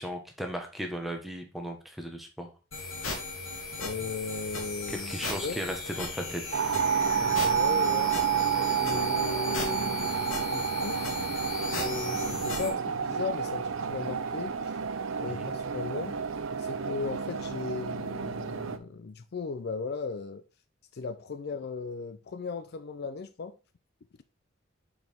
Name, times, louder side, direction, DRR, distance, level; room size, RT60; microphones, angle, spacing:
voice 1, 0.0-2.5 4.9-6.7 15.3-15.5, equal, ahead, 1.2 m, -36 dB
sound 1, 2.7-12.7, left 3 dB, 85° left, 2.1 m, -36 dB
voice 2, 3.8-5.1 5.4-5.6 7.1-8.1 8.7-11.2 11.7-14.7 15.2-16.2 16.6-20.4 20.9-23.6, left 4 dB, 55° left, 0.5 m, -37 dB
sound 2, 6.5-18.8, right 7 dB, 90° right, 0.6 m, -30 dB
6.4 x 4.7 x 3.5 m
head